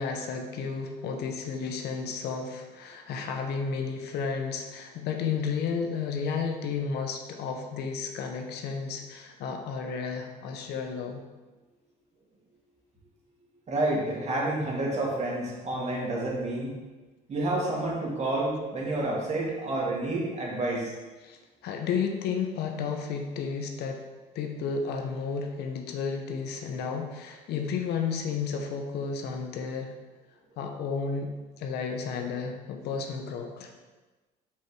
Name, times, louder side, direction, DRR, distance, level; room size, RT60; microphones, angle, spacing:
voice 1, 0.0-11.2 21.2-24.0 24.3-29.9 30.6-31.3 31.6-33.7, left 5 dB, 80° left, 4 dB, 0.8 m, -32 dB
voice 2, 13.7-16.8 17.3-20.9, right 2 dB, 40° right, -3 dB, 2.0 m, -29 dB
5.4 x 4.6 x 4.7 m, 1.2 s
cardioid pair, 110°, 17 cm